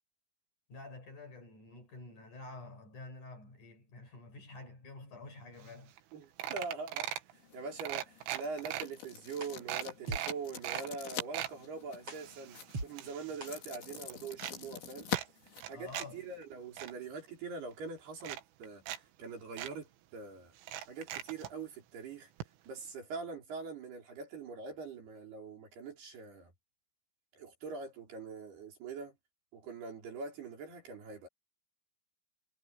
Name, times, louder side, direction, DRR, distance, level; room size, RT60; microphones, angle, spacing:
voice 1, 0.7-6.0 15.7-16.2, left 3 dB, 40° left, 7.1 m, -49 dB
sound 1, 5.7-5.8 6.0-6.1 6.4-7.3 7.8-8.8 9.3-9.4 9.7-10.9 11.1-11.6 12.1-13.6 13.8-14.6 15.1-16.1 16.4-16.9 17.7-17.8 18.2-19.0 19.2-19.3 19.6-19.7 20.6-21.5 22.4-22.5 22.8-22.9, right 12 dB, 80° right, 4.1 m, -40 dB
voice 2, 6.1-7.1 7.5-15.1 15.7-20.5 20.9-22.3 22.7-26.5 27.3-29.1 29.5-31.3, right 4 dB, 55° right, 6.4 m, -43 dB
sound 2, 7.3-16.4, left 7 dB, 70° left, 6.4 m, -44 dB
sound 3, 9.4-9.5 10.1-10.2 10.7-10.8 11.4-11.5 12.1-12.2 12.7-12.9 13.4-13.5, right 2 dB, 30° right, 8.5 m, -38 dB
omnidirectional pair, 5.6 m